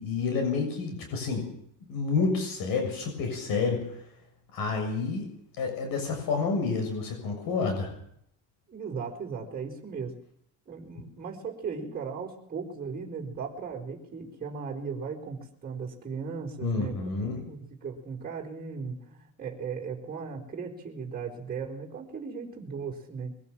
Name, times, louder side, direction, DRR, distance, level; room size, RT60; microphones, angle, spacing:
voice 1, 0.0-1.5 1.9-4.1 4.5-5.3 5.6-8.0 16.6-17.4, left 4 dB, 65° left, 4 dB, 7.0 m, -29 dB
voice 2, 8.7-10.1 10.7-17.0 17.5-23.3, right 5 dB, 25° right, -1 dB, 4.6 m, -37 dB
23.5 x 16.5 x 7.5 m, 0.69 s
cardioid pair, 140°, 37 cm